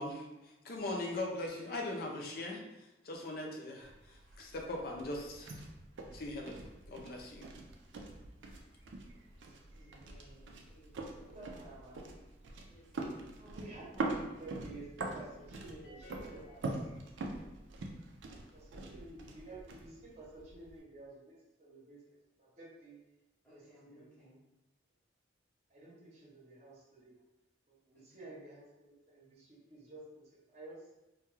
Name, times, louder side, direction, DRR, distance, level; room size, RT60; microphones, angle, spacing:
voice 1, 0.0-5.6 6.1-7.5, left 2 dB, 50° left, 1 dB, 0.4 m, -40 dB
sound 1, 3.8-20.8, right 2 dB, 75° right, 0.4 m, -44 dB
voice 2, 9.7-11.3 12.6-12.9 18.8-19.3 23.4-24.4 27.9-28.1, equal, 5° left, -9 dB, 0.8 m, -62 dB
voice 3, 11.2-12.0 13.4-16.8 18.5-23.0 23.5-24.1 25.7-27.1 27.7-30.9, right 2 dB, 35° right, -6 dB, 0.7 m, -52 dB
sound 2, 15.8-17.6, left 1 dB, 85° left, 1.1 m, -59 dB
2.3 x 2.2 x 3.0 m, 0.97 s
head